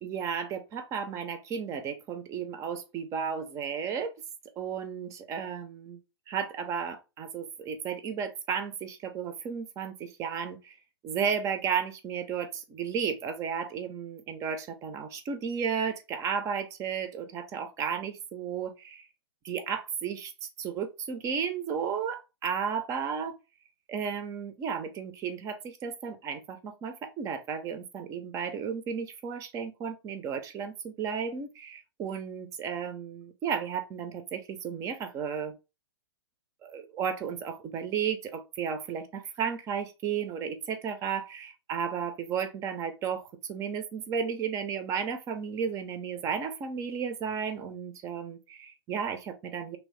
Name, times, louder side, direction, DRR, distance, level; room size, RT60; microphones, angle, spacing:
voice 1, 0.0-4.1 4.6-6.0 6.3-10.7 11.0-19.1 19.4-23.3 23.9-35.5 36.6-49.8, right 7 dB, 25° right, 0.5 m, -33 dB
3.0 x 2.6 x 3.0 m
hypercardioid pair, 125°, 14 cm